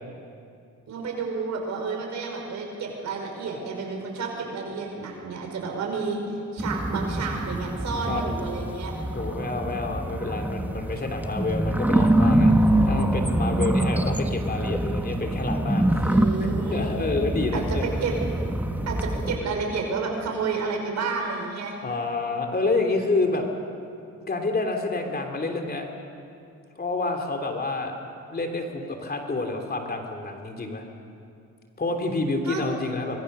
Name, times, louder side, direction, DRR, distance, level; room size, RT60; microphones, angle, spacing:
voice 1, 0.9-6.2 6.5-8.9 16.0-17.0 17.5-18.2 18.9-21.8 32.4-32.6, right 4 dB, 65° right, 1 dB, 5.5 m, -30 dB
sound 1, 6.6-19.4, right 1 dB, 5° right, 1.3 m, -25 dB
voice 2, 9.1-12.5 12.8-16.1 16.7-17.9 21.8-23.5 24.3-25.9 26.8-28.0 28.3-30.9 31.8-33.2, left 3 dB, 30° left, 3 dB, 3.1 m, -28 dB
25.0 x 21.0 x 6.7 m, 2.4 s
cardioid pair, 90°, 30 cm